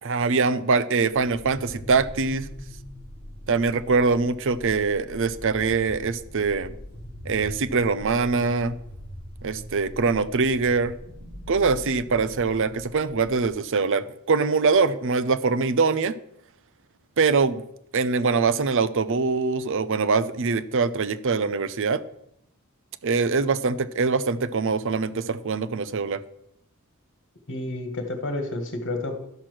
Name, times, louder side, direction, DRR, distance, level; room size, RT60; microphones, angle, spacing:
voice 1, 0.0-2.5 3.5-6.7 7.2-8.8 9.4-10.9 11.5-16.2 17.2-17.6 17.9-22.0 23.0-26.2, right 4 dB, 60° right, 14 dB, 0.6 m, -23 dB
sound 1, 1.1-13.5, equal, 25° right, 5.3 m, -41 dB
voice 2, 27.5-29.2, left 2 dB, 55° left, 5 dB, 1.8 m, -30 dB
11.5 x 6.0 x 6.4 m, 0.76 s
head